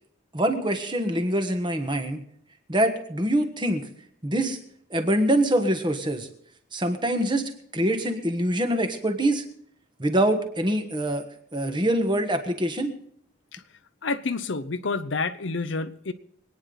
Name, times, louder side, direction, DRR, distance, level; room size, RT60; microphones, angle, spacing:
voice 1, 0.3-2.2 2.7-3.8 4.2-4.6 4.9-6.3 6.7-7.4 7.7-9.4 10.0-11.2 11.5-12.9, right 1 dB, 20° right, 6 dB, 1.4 m, -24 dB
voice 2, 14.0-16.1, left 3 dB, 60° left, 11 dB, 0.7 m, -29 dB
25.0 x 9.7 x 4.0 m, 0.66 s
head